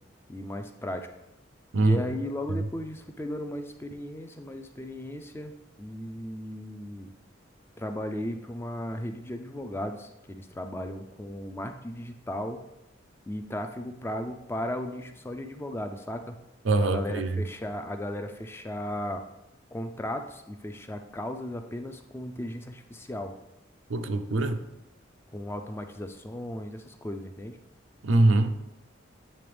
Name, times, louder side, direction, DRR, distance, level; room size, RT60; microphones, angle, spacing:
voice 1, 0.3-1.1 1.8-7.1 7.8-12.6 13.3-16.4 16.8-19.2 19.7-23.3 25.3-27.6, left 1 dB, 10° left, 0.3 m, -36 dB
voice 2, 16.6-17.4 23.9-24.6 28.0-28.5, right 2 dB, 80° right, 0.5 m, -23 dB
8.6 x 3.4 x 3.3 m
head